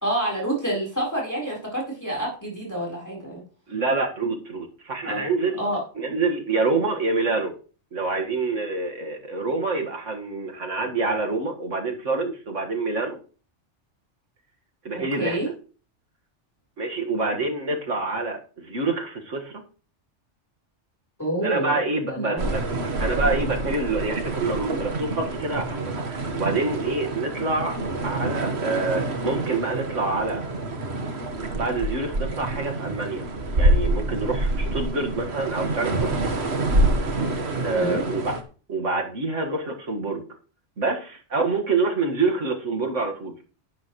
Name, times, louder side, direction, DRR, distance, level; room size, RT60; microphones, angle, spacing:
voice 1, 0.0-3.4 5.0-5.3 5.6-5.8 15.0-15.5 21.2-21.8 22.1-22.5 37.7-38.0, right 1 dB, 15° left, -3 dB, 4.3 m, -28 dB
voice 2, 3.7-5.6 6.0-7.5 7.9-13.2 14.8-15.5 16.8-19.6 21.4-22.7 23.0-27.8 28.0-30.4 31.5-33.3 33.5-36.1 37.6-38.4 38.7-40.2 40.8-43.3, right 3 dB, 85° right, 2 dB, 2.2 m, -26 dB
sound 1, 22.4-38.4, right 2 dB, 60° right, 1.7 m, -27 dB
11.5 x 11.0 x 3.2 m, 0.39 s
omnidirectional pair, 1.2 m